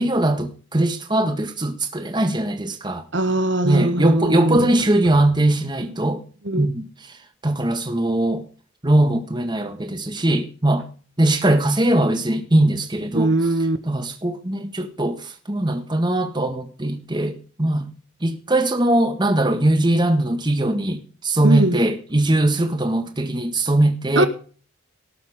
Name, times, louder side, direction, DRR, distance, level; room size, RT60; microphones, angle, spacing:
voice 1, 0.0-3.0 3.6-6.2 6.5-6.9 7.4-8.4 8.8-10.8 11.2-13.3 13.8-17.9 18.2-24.3, right 1 dB, 20° right, 1.7 m, -20 dB
voice 2, 3.1-4.7 6.4-6.7 13.1-13.8 21.4-21.8 24.1-24.3, right 2 dB, 60° right, 1.4 m, -20 dB
18.0 x 7.4 x 5.1 m
head